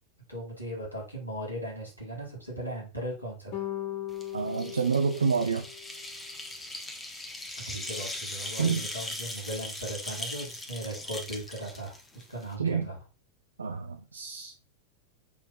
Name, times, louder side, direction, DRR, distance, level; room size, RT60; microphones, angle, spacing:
voice 1, 0.3-3.7 7.6-13.0, right 1 dB, 90° right, 4.9 m, -38 dB
sound 1, 3.5-6.1, left 13 dB, 50° left, 1.9 m, -38 dB
sound 2, 4.1-12.5, left 1 dB, 10° left, 1.6 m, -39 dB
voice 2, 4.3-5.7 8.6-8.9 12.6-12.9 13.6-14.5, right 5 dB, 75° right, 0.8 m, -28 dB
7.4 x 4.5 x 5.7 m
figure-of-eight pair, 90°, 0 cm